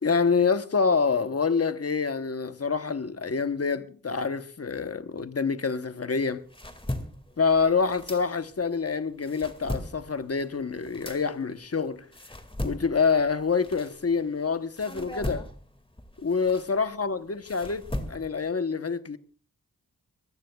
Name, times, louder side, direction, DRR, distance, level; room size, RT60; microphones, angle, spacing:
voice 1, 0.0-6.4 7.4-12.1 12.6-15.5 16.2-19.2, left 5 dB, 40° left, 1.0 m, -26 dB
sound 1, 6.2-8.7 9.1-14.4 14.8-18.5, left 1 dB, 15° left, 2.0 m, -38 dB
24.0 x 15.0 x 2.3 m
cardioid pair, 50°, 36 cm